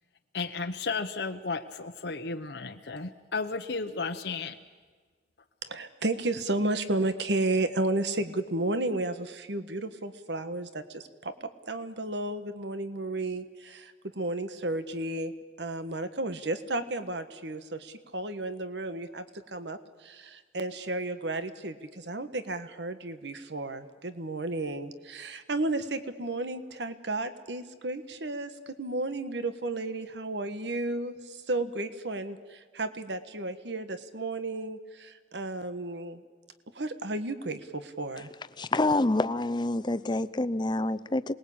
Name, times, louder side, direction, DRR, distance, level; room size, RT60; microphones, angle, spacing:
voice 1, 0.3-4.6, left 4 dB, 65° left, 5 dB, 1.0 m, -33 dB
voice 2, 5.6-15.3 15.6-36.2 36.7-38.3, right 2 dB, 75° right, 11 dB, 1.5 m, -33 dB
voice 3, 38.6-41.3, left 2 dB, 25° left, 12 dB, 0.7 m, -27 dB
27.5 x 20.5 x 8.7 m, 1.5 s
head